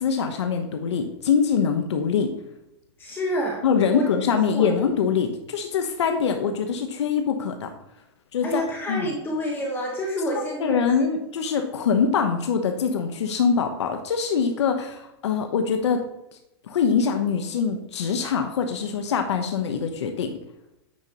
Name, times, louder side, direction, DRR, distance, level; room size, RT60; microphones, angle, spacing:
voice 1, 0.0-2.3 3.6-7.7 8.3-8.6 8.9-9.1 10.6-16.0 16.7-20.3, left 6 dB, 85° left, 5 dB, 1.0 m, -23 dB
voice 2, 3.0-3.6 3.9-4.1 4.5-4.7 8.4-11.0, equal, 15° left, -1 dB, 1.0 m, -28 dB
9.5 x 5.2 x 2.9 m, 0.88 s
supercardioid pair, 150°, 14 cm